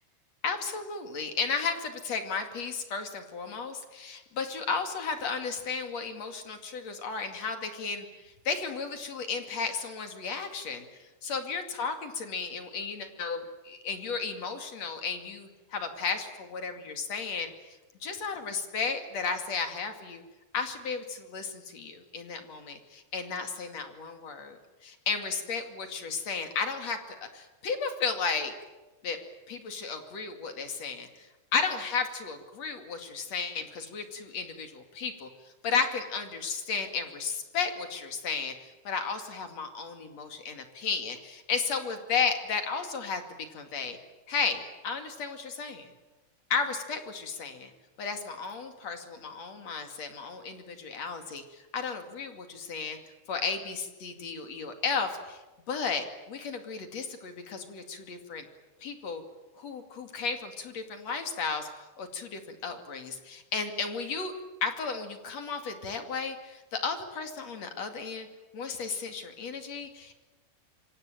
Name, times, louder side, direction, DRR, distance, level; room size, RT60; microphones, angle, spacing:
voice 1, 0.4-10.8 11.2-17.5 18.0-20.2 20.5-24.6 24.8-28.5 29.0-29.2 29.5-31.3 31.5-35.3 35.6-44.0 44.3-45.9 46.5-47.7 48.0-53.0 53.3-55.4 55.7-58.5 58.8-59.2 59.6-64.3 64.6-68.3 68.5-70.1, left 5 dB, 45° left, 6 dB, 3.0 m, -34 dB
26.5 x 25.0 x 8.9 m, 1.1 s
omnidirectional pair, 4.9 m